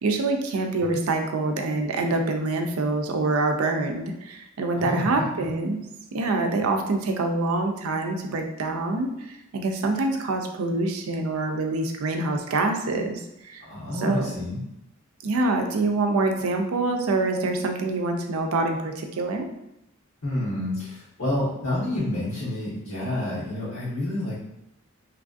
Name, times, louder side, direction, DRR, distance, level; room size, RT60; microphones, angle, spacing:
voice 1, 0.0-5.8 6.1-13.6 14.0-14.2 15.2-19.5, right 2 dB, 85° right, 4 dB, 0.4 m, -25 dB
voice 2, 4.7-5.5 13.6-14.6 20.2-24.4, left 1 dB, 75° left, -12 dB, 1.3 m, -29 dB
3.1 x 2.4 x 2.5 m, 0.86 s
head